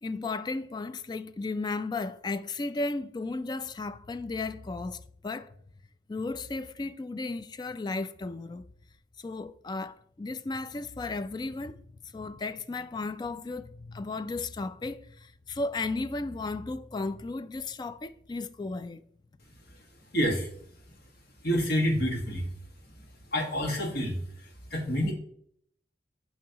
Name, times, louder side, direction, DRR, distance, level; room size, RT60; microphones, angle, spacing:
voice 1, 0.0-5.5 6.1-8.7 9.2-19.0, left 3 dB, 25° left, 0.3 m, -35 dB
voice 2, 20.1-20.5 20.9-21.0 21.4-22.5 22.8-22.9 23.3-25.1, equal, 60° left, 1.6 m, -28 dB
9.1 x 5.5 x 2.9 m
head